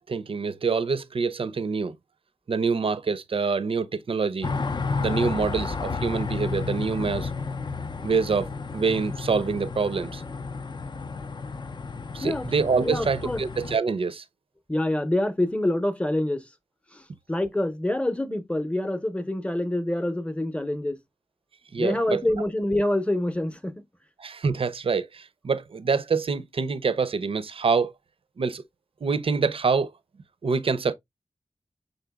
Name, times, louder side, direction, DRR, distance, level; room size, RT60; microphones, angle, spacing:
voice 1, 0.1-2.0 2.5-4.5 5.0-7.3 8.0-10.2 12.1-14.2 21.7-22.2 24.2-27.9 28.4-28.6 29.0-29.9 30.4-30.9, right 5 dB, 60° right, 0.4 m, -26 dB
sound 1, 4.4-13.8, left 4 dB, 45° left, 0.4 m, -32 dB
voice 2, 12.8-13.4 14.7-16.4 16.9-17.0 17.3-21.0 21.8-23.7, left 1 dB, 10° left, 0.7 m, -26 dB
5.3 x 3.8 x 2.2 m
cardioid pair, 40°, 11 cm